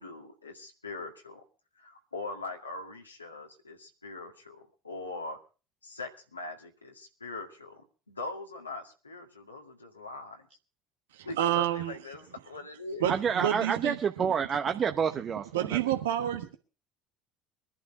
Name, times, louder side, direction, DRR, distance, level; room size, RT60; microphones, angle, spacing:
voice 1, 0.0-1.4 1.8-5.4 5.8-10.4 11.2-13.1, left 2 dB, 90° left, 2 dB, 2.2 m, -41 dB
voice 2, 11.1-11.9 13.0-14.0 15.5-16.6, right 12 dB, 75° right, 6 dB, 1.2 m, -29 dB
voice 3, 13.1-15.8, right 7 dB, 35° right, 6 dB, 0.9 m, -29 dB
21.5 x 11.5 x 4.6 m, 0.37 s
figure-of-eight pair, 65°, 0 cm